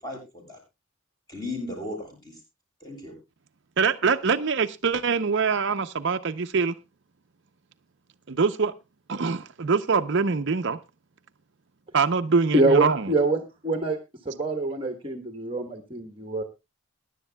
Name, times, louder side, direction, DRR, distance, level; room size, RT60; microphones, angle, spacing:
voice 1, 0.0-0.6 1.3-2.4 2.8-3.1, left 2 dB, 20° left, 7.4 m, -36 dB
voice 2, 3.8-6.7 8.3-8.7 9.1-10.8 11.9-13.1, right 5 dB, 55° right, 0.6 m, -24 dB
voice 3, 12.5-14.0 14.2-16.4, right 2 dB, 25° right, 1.2 m, -25 dB
22.0 x 11.0 x 2.2 m
head